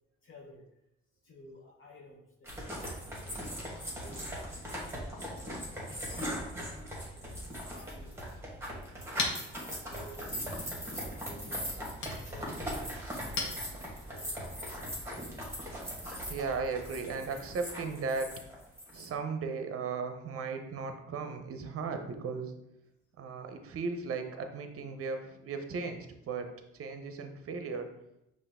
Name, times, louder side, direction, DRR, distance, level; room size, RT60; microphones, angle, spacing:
voice 1, 0.2-0.7 1.2-4.5 5.1-6.8 7.2-8.4 8.9-11.6 12.0-14.6, left 1 dB, 45° left, -3 dB, 0.9 m, -55 dB
sound 1, 2.5-19.1, equal, 10° right, 1.5 m, -40 dB
Chink clink, 8.6-14.3, left 4 dB, 65° left, 1.0 m, -41 dB
voice 2, 16.3-18.4 18.9-22.5 23.2-27.9, right 4 dB, 50° right, 6 dB, 0.7 m, -36 dB
5.6 x 2.6 x 3.6 m, 0.84 s
cardioid pair, 90°, 30 cm